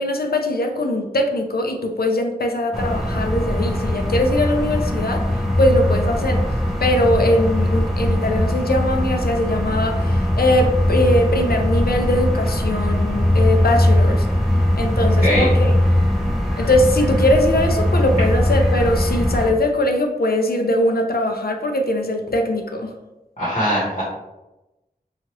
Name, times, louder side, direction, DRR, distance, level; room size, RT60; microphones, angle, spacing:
voice 1, 0.0-5.2 5.6-6.4 6.8-14.3 14.8-15.7 16.6-22.9, left 1 dB, 70° left, 4 dB, 0.4 m, -21 dB
sound 1, 2.7-19.5, left 1 dB, ahead, 0.6 m, -20 dB
voice 2, 23.4-24.0, equal, 40° left, -7 dB, 1.1 m, -20 dB
2.9 x 2.4 x 2.9 m, 0.99 s
wide cardioid pair, 40°, 16 cm